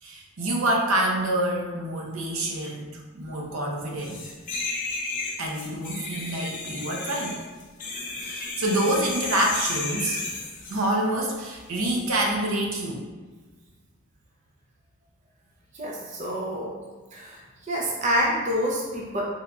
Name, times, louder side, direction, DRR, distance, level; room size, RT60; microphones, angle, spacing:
voice 1, 0.0-4.2 5.4-7.4 8.2-10.2 10.7-13.1, right 1 dB, 85° right, -1 dB, 0.6 m, -27 dB
sound 1, 4.0-10.9 11.8-12.0, left 3 dB, 40° left, 0.6 m, -33 dB
voice 2, 15.7-16.7 17.1-19.2, equal, 35° right, -3 dB, 0.5 m, -27 dB
3.6 x 3.1 x 2.3 m, 1.3 s
head